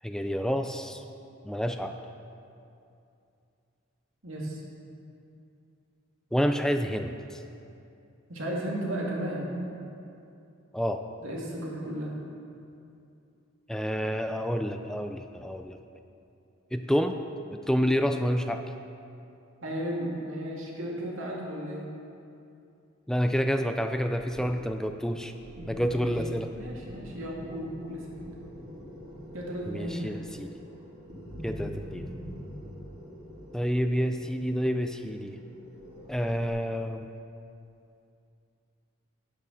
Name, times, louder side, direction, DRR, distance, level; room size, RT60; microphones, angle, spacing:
voice 1, 0.0-1.0 1.4-1.9 6.3-7.4 10.7-11.0 13.7-15.8 16.7-17.2 17.5-18.6 23.1-25.3 25.7-26.5 29.7-30.5 31.4-32.1 33.5-35.4 36.1-37.1, equal, 5° left, 6 dB, 0.3 m, -28 dB
voice 2, 4.2-4.6 8.3-9.5 11.2-12.1 19.6-21.9 25.5-26.1 26.5-28.1 29.3-30.2, equal, 90° right, -3 dB, 2.2 m, -34 dB
sound 1, 24.2-36.5, equal, 35° right, 2.6 m, -45 dB
9.3 x 8.4 x 6.4 m, 2.6 s
head